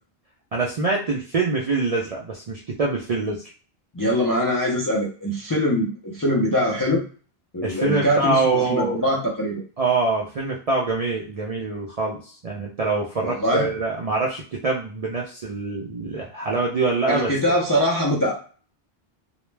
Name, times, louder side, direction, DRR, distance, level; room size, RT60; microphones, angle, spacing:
voice 1, 0.5-3.4 7.6-9.0 9.8-17.3, right 3 dB, 55° right, -3 dB, 0.4 m, -24 dB
voice 2, 3.9-7.0 7.5-9.6 13.2-13.7 17.1-18.4, equal, 30° left, -4 dB, 0.4 m, -23 dB
2.2 x 2.0 x 3.1 m, 0.40 s
omnidirectional pair, 1.0 m